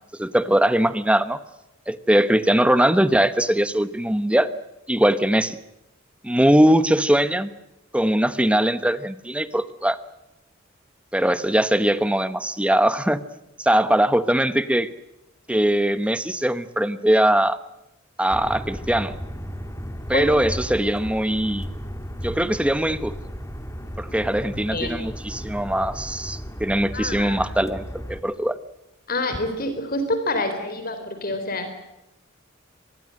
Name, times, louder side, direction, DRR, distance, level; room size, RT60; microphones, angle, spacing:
voice 1, 0.2-1.4 1.9-4.5 4.9-5.6 6.2-7.5 7.9-10.0 11.1-13.2 13.6-14.9 15.5-17.6 18.2-19.1 20.1-21.7 22.2-23.1 24.0-28.6, right 1 dB, 5° right, 13 dB, 1.0 m, -21 dB
sound 1, 18.3-28.2, equal, 15° left, 2.3 m, -34 dB
voice 2, 26.9-27.4 29.1-31.7, left 1 dB, 45° left, 8 dB, 3.9 m, -27 dB
25.5 x 22.0 x 7.7 m, 0.91 s
head